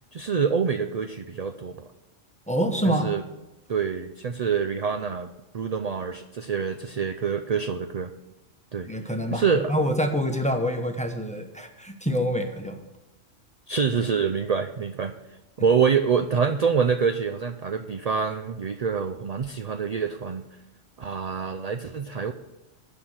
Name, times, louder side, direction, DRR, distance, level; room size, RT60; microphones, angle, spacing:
voice 1, 0.1-1.9 3.0-3.2 3.7-8.1 8.7-8.9 9.3-9.7 13.7-15.1 15.6-20.5 21.0-22.3, right 6 dB, 55° right, 8 dB, 0.4 m, -26 dB
voice 2, 2.5-3.1 8.9-12.8, equal, 5° left, 5 dB, 0.9 m, -26 dB
9.7 x 6.2 x 8.0 m, 1.0 s
omnidirectional pair, 1.3 m